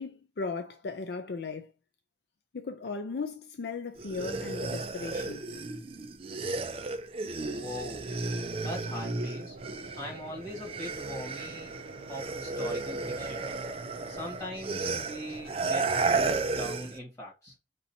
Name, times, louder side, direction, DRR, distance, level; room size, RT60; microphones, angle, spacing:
voice 1, 0.0-1.7 2.5-5.5, left 4 dB, 70° left, 0.5 m, -37 dB
sound 1, 4.0-10.2 10.5-17.0, right 3 dB, 35° right, 0.4 m, -33 dB
sound 2, 7.4-15.7, right 3 dB, 90° right, 0.5 m, -47 dB
voice 2, 7.5-8.1 8.6-9.6 10.0-11.7 12.1-13.4 14.1-17.5, equal, 20° left, 1.9 m, -41 dB
sound 3, 11.0-16.0, equal, 50° left, 2.7 m, -56 dB
5.4 x 2.7 x 2.7 m
head